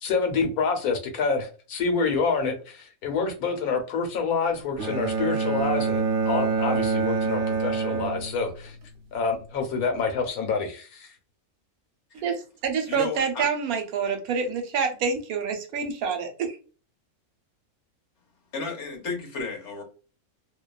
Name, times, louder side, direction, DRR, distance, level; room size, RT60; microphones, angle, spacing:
voice 1, 0.0-8.8 9.1-11.1, left 4 dB, 90° left, 1.2 m, -27 dB
Bowed string instrument, 4.8-8.9, right 5 dB, 60° right, 0.6 m, -26 dB
voice 2, 12.1-16.6, right 6 dB, 80° right, 1.1 m, -27 dB
voice 3, 12.9-13.4 18.5-19.8, left 4 dB, 55° left, 1.1 m, -33 dB
2.6 x 2.3 x 2.3 m
omnidirectional pair, 1.5 m